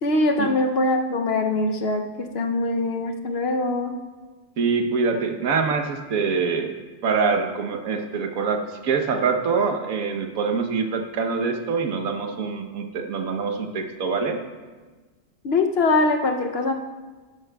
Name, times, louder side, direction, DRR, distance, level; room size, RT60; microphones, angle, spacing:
voice 1, 0.0-3.9 15.4-16.7, left 2 dB, 55° left, 4 dB, 0.8 m, -22 dB
voice 2, 4.6-6.7 7.0-14.4, right 5 dB, 90° right, 5 dB, 1.3 m, -24 dB
13.0 x 11.0 x 2.3 m, 1.3 s
omnidirectional pair, 1.4 m